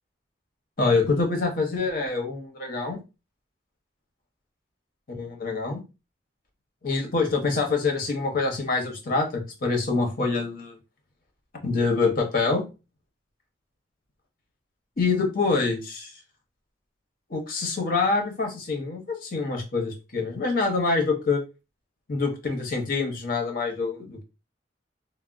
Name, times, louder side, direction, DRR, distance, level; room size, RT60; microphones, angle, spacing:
voice 1, 0.8-3.0 5.1-5.8 6.8-10.8 11.6-12.7 15.0-16.1 17.3-21.4 22.1-24.2, left 3 dB, 55° left, 3 dB, 0.9 m, -25 dB
3.4 x 2.1 x 2.5 m, 0.28 s
head